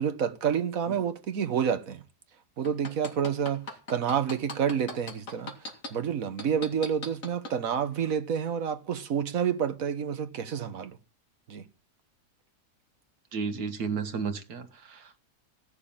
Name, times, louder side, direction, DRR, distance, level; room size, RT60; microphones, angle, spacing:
voice 1, 0.0-2.0 2.6-3.6 3.9-5.5 5.9-10.9 11.5-11.6, right 8 dB, 60° right, 1.6 m, -29 dB
sound 1, 2.6-5.9 6.4-7.5 8.0-8.1, left 2 dB, 55° left, 2.7 m, -37 dB
voice 2, 13.3-15.2, right 5 dB, 80° right, 2.0 m, -33 dB
17.0 x 6.8 x 8.8 m
omnidirectional pair, 1.7 m